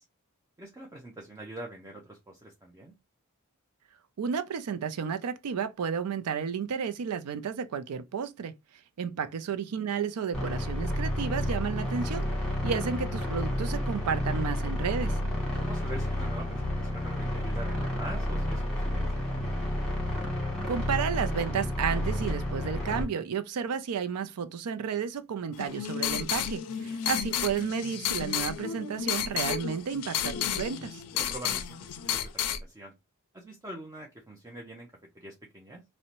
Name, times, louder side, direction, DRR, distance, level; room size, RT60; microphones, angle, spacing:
voice 1, 0.6-2.9 15.6-19.2 26.8-27.0 31.1-32.9 33.3-34.9 35.1-35.8, right 1 dB, 15° right, 0.4 m, -44 dB
voice 2, 4.2-8.5 9.0-12.3 12.6-15.1 20.7-31.0, right 6 dB, 85° right, 0.4 m, -32 dB
sound 1, 10.3-23.0, left 1 dB, 5° left, 1.3 m, -30 dB
sound 2, 25.5-32.6, left 9 dB, 80° left, 0.4 m, -32 dB
2.6 x 2.1 x 2.9 m
head